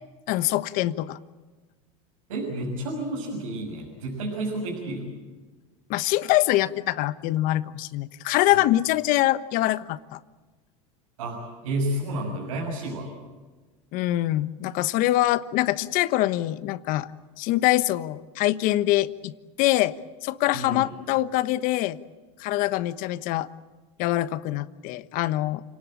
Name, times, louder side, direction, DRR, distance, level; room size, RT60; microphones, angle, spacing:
voice 1, 0.3-1.2 5.9-10.2 13.9-17.1 17.4-19.3 19.6-19.9 20.2-22.0 22.4-23.5 24.0-25.6, left 16 dB, 55° left, 14 dB, 1.2 m, -24 dB
voice 2, 2.3-5.1 11.2-13.1 20.5-20.9, right 1 dB, 85° right, -1 dB, 6.6 m, -30 dB
29.0 x 19.0 x 8.9 m, 1.3 s
supercardioid pair, 105°, 17 cm